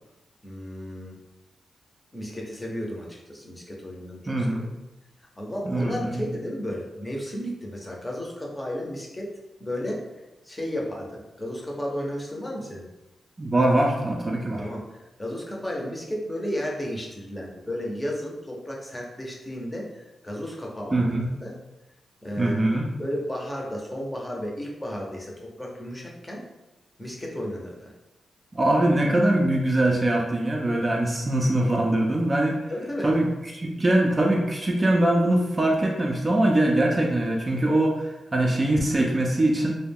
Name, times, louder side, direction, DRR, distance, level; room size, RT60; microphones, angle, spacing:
voice 1, 0.4-1.2 2.1-4.7 5.4-9.3 9.6-12.9 14.6-21.6 22.2-22.6 23.0-26.4 27.0-27.9 32.7-33.1, equal, 15° left, -2 dB, 0.6 m, -33 dB
voice 2, 4.3-4.6 5.7-6.2 13.4-14.6 20.9-21.3 22.4-22.8 28.5-32.6 33.0-39.7, right 1 dB, 30° right, -1 dB, 0.4 m, -22 dB
2.3 x 2.1 x 3.4 m, 1.0 s
cardioid pair, 80°, 0 cm